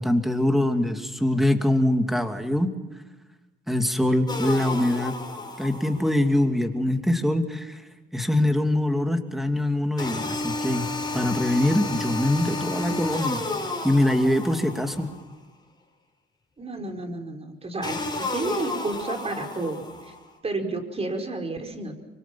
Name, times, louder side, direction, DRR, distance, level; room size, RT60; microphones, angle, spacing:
voice 1, 0.0-2.7 3.7-5.2 5.6-7.8 8.1-10.9 11.1-13.5 13.8-15.1, left 1 dB, ahead, 5 dB, 2.8 m, -23 dB
sound 1, 4.3-6.2 10.0-15.2 17.8-20.2, left 2 dB, 20° left, 6.8 m, -32 dB
voice 2, 16.6-20.1 20.4-22.0, right 2 dB, 30° right, 5 dB, 4.9 m, -31 dB
25.5 x 24.0 x 6.0 m, 1.1 s
cardioid pair, 90°, 20 cm